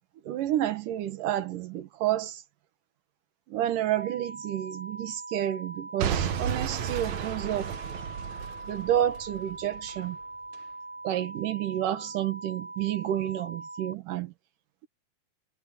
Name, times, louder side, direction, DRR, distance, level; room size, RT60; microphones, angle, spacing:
voice 1, 0.3-2.4 3.5-7.8 8.7-10.2 11.0-14.3, right 12 dB, 85° right, 2.9 m, -30 dB
sound 1, 3.9-13.9, right 2 dB, 30° right, 8.6 m, -42 dB
Boom / Shatter / Crushing, 6.0-10.0 10.5-10.6, right 8 dB, 65° right, 2.4 m, -33 dB
omnidirectional pair, 3.7 m